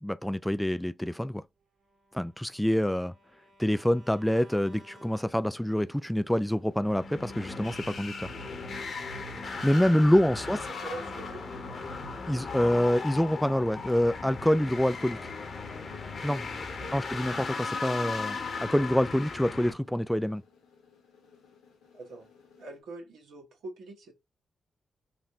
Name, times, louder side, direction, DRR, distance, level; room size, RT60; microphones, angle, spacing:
voice 1, 0.0-1.4 2.1-3.1 3.6-8.1 9.4-10.6 12.3-15.2 16.2-16.4 16.9-20.4, equal, 5° left, 0.4 m, -26 dB
Bowed string instrument, 1.8-6.0, right 1 dB, 55° right, 1.7 m, -57 dB
sound 1, 4.3-22.8, left 5 dB, 85° left, 1.4 m, -61 dB
sound 2, 6.8-19.7, left 4 dB, 60° left, 1.1 m, -37 dB
voice 2, 10.4-11.4 16.8-17.1 21.9-22.3 22.6-24.1, right 2 dB, 75° right, 1.5 m, -44 dB
4.1 x 2.6 x 4.2 m
hypercardioid pair, 40°, 0 cm